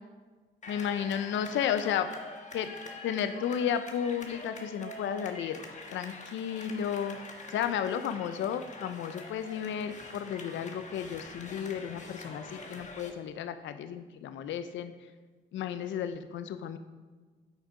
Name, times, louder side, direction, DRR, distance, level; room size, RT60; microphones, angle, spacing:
sound 1, 0.6-13.1, left 2 dB, 35° left, 1.5 m, -45 dB
voice 1, 0.7-2.1 2.5-2.7 3.0-5.6 5.9-7.2 7.5-14.9 15.5-16.8, left 8 dB, 70° left, 10 dB, 0.6 m, -33 dB
8.3 x 6.4 x 5.0 m, 1.4 s
cardioid pair, 90°, 20 cm